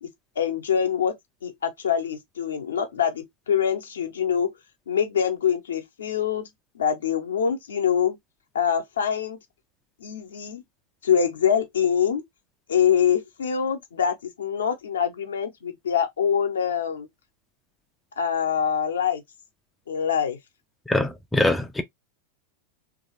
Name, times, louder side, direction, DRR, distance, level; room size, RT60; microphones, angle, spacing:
voice 1, 0.4-1.1 1.4-4.5 4.9-6.5 6.7-8.2 8.5-9.4 10.0-10.6 11.0-12.2 12.7-17.1 18.2-19.2 19.9-20.4, left 8 dB, 65° left, 0.7 m, -24 dB
voice 2, 20.9-21.8, left 2 dB, 5° left, 0.4 m, -23 dB
3.1 x 2.6 x 2.7 m
figure-of-eight pair, 90°, 0 cm